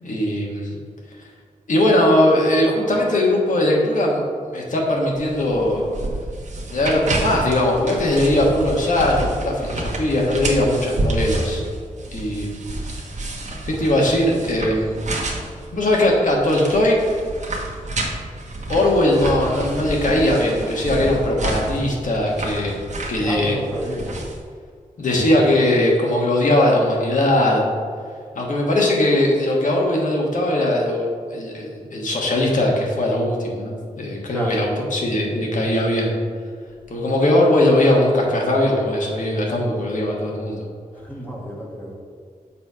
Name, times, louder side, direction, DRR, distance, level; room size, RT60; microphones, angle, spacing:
voice 1, 0.0-0.7 1.7-4.2 4.5-5.9 6.7-11.6 12.1-12.6 13.6-14.9 15.7-17.0 18.7-22.8 23.1-23.5 25.0-27.6 28.3-36.2 36.9-40.7, left 1 dB, 60° left, -2 dB, 1.3 m, -19 dB
sound 1, 5.1-24.4, right 2 dB, 55° right, 1.1 m, -29 dB
voice 2, 23.2-24.2 34.3-34.6 41.0-41.9, equal, 10° left, -4 dB, 1.3 m, -29 dB
7.0 x 3.3 x 5.5 m, 2.1 s
wide cardioid pair, 135°, 15 cm